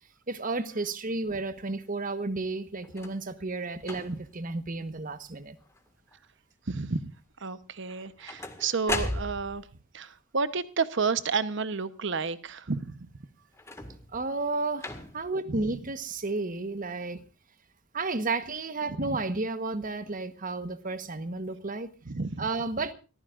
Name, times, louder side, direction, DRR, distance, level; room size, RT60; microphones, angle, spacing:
voice 1, 0.3-5.6 14.1-17.2 17.9-21.9 22.4-22.9, right 3 dB, 40° right, 1.3 m, -32 dB
sound 1, 2.8-3.3 3.8-4.3 4.9-5.3 5.6-6.2 7.9-9.7 13.5-14.2 14.8-15.4 16.2-16.3, left 2 dB, 15° left, 1.9 m, -37 dB
voice 2, 6.7-7.1 7.4-9.6 9.9-13.0 15.5-15.6 19.0-19.2 22.1-22.5, right 4 dB, 60° right, 1.0 m, -31 dB
29.5 x 15.0 x 2.5 m
head